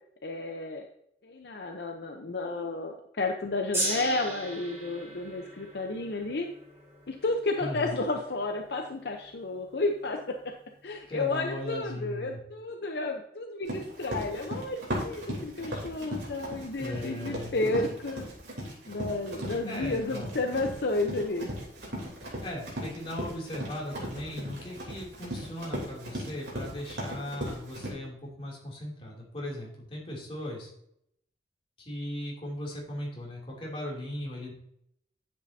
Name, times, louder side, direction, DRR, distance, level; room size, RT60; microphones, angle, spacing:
voice 1, 0.2-0.9 1.2-6.5 7.1-10.2 10.8-18.3 18.9-21.5, left 2 dB, 65° left, 3 dB, 0.7 m, -32 dB
Gong, 3.7-10.1 10.9-11.0, right 1 dB, 15° right, 3.6 m, -38 dB
voice 2, 7.6-8.0 11.1-12.4 16.8-18.0 19.6-20.3 22.4-30.7 31.8-34.5, left 1 dB, 30° left, -3 dB, 2.8 m, -38 dB
Run, 13.6-27.9, equal, 80° right, 3.1 m, -37 dB
9.9 x 7.7 x 2.7 m, 0.72 s
head